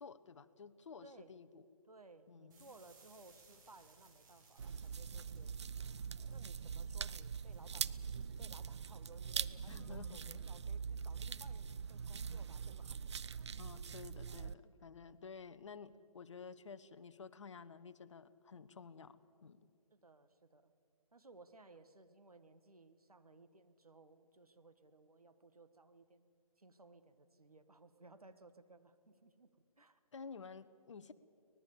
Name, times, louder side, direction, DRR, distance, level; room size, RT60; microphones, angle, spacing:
voice 1, 0.0-1.6 2.3-2.6 9.7-10.4 13.6-19.7 30.1-31.1, left 5 dB, 55° left, 13 dB, 1.0 m, -52 dB
voice 2, 1.0-1.4 1.9-5.5 6.3-13.4 19.9-20.7 21.1-26.3 26.6-30.0, right 3 dB, 80° right, 10 dB, 1.6 m, -61 dB
sound 1, 2.5-10.4, right 4 dB, 30° right, 4.7 m, -67 dB
sound 2, 4.6-14.5, right 6 dB, 50° right, 0.6 m, -43 dB
24.5 x 19.5 x 7.1 m, 2.4 s
figure-of-eight pair, 145°, 19 cm